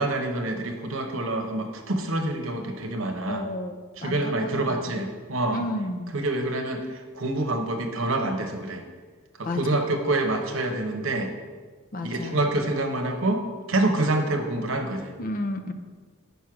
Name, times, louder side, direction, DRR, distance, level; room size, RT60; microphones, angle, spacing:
voice 1, 0.0-3.5 4.0-5.6 6.1-8.8 9.5-11.3 12.0-13.4 13.7-15.1, right 2 dB, 65° right, 4 dB, 0.9 m, -26 dB
voice 2, 3.3-5.1 5.5-6.1 9.4-10.0 11.9-12.4 15.2-15.7, left 1 dB, 40° left, 7 dB, 0.6 m, -32 dB
6.3 x 5.4 x 5.9 m, 1.5 s
head